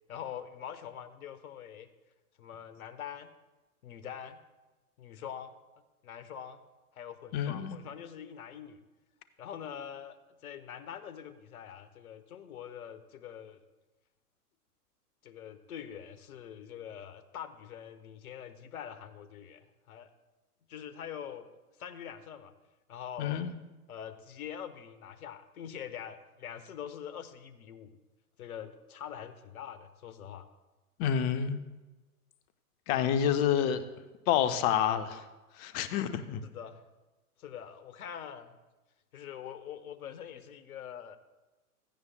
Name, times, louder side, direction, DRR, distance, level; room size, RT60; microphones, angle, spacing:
voice 1, 0.1-1.9 2.4-3.3 3.8-4.4 5.0-5.5 6.0-6.6 6.9-8.8 9.4-10.2 10.4-13.6 15.2-20.1 20.7-21.5 21.8-22.5 22.9-23.5 23.9-27.9 28.4-30.5 36.4-36.8 37.4-38.5 39.1-41.2, left 9 dB, 70° left, 12 dB, 1.1 m, -44 dB
voice 2, 7.3-7.8 23.2-23.5 31.0-31.6 32.9-33.8 34.3-35.2 35.6-36.4, left 9 dB, 20° left, 11 dB, 0.5 m, -28 dB
16.0 x 14.0 x 2.2 m, 1.1 s
hypercardioid pair, 115°, 45 cm